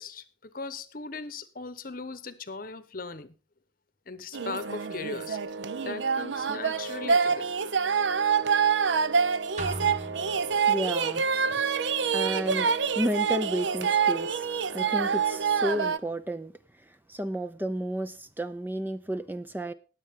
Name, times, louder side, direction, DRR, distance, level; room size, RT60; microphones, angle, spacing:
voice 1, 0.0-3.3 4.1-5.4 5.8-7.5, left 3 dB, 50° left, 1.0 m, -38 dB
sound 1, 4.3-16.0, right 6 dB, 85° right, 0.6 m, -26 dB
sound 2, 9.6-11.0, right 1 dB, 40° right, 1.3 m, -38 dB
voice 2, 10.7-11.8 12.1-16.5 16.8-19.7, equal, 10° right, 0.5 m, -32 dB
20.0 x 7.6 x 3.6 m
head